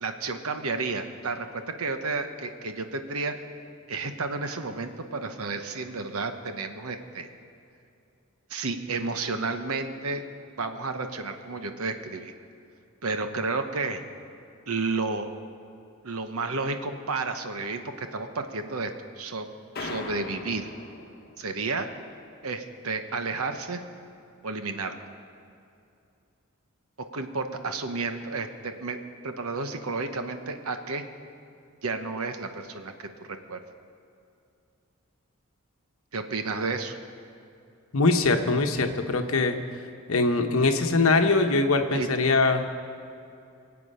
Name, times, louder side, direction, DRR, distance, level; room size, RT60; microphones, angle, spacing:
voice 1, 0.0-3.3 3.9-7.3 8.5-10.2 10.6-12.3 13.0-14.0 14.7-15.3 16.0-19.5 19.8-20.7 21.4-21.9 22.4-23.8 24.4-25.0 27.1-29.0 29.2-31.0 31.8-33.6 36.1-37.0 41.9-42.1, right 3 dB, 85° right, 7 dB, 1.0 m, -31 dB
sound 1, 19.8-21.7, left 2 dB, 45° left, 1.4 m, -39 dB
voice 2, 37.9-39.6 40.1-42.6, left 3 dB, 75° left, 6 dB, 1.1 m, -22 dB
23.0 x 8.4 x 5.5 m, 2.6 s
head